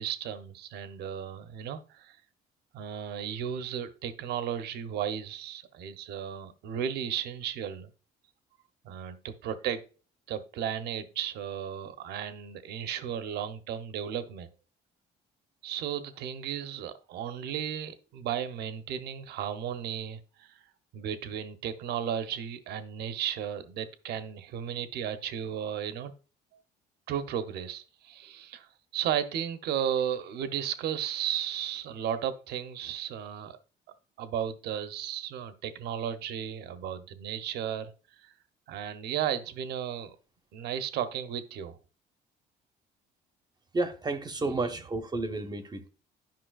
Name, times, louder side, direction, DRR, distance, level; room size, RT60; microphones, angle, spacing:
voice 1, 0.0-2.2 2.7-7.9 8.8-9.8 10.3-14.5 15.6-20.6 20.9-26.1 27.1-33.6 34.2-37.9 38.2-38.3 38.7-40.2 40.5-41.8, right 9 dB, 75° right, 0.8 m, -34 dB
voice 2, 43.7-45.9, right 2 dB, 25° right, 0.7 m, -31 dB
10.5 x 5.4 x 2.3 m
cardioid pair, 110°, 17 cm